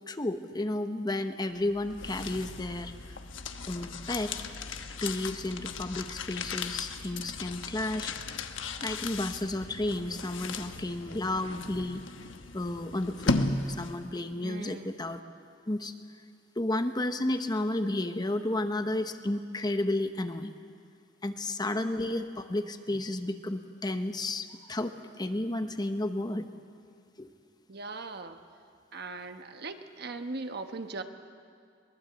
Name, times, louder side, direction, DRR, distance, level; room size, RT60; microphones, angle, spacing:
voice 1, 0.1-2.9 3.7-4.4 5.0-8.4 8.8-12.0 12.5-15.2 15.7-15.9 16.6-20.5 21.2-26.5 27.2-27.3, left 1 dB, 20° left, 8 dB, 0.9 m, -32 dB
sound 1, 1.6-14.2, left 3 dB, 90° left, 1.1 m, -36 dB
voice 2, 14.4-15.0 27.7-28.4 28.9-31.0, right 3 dB, 60° right, 7 dB, 1.2 m, -39 dB
22.5 x 19.5 x 7.9 m, 2.2 s
head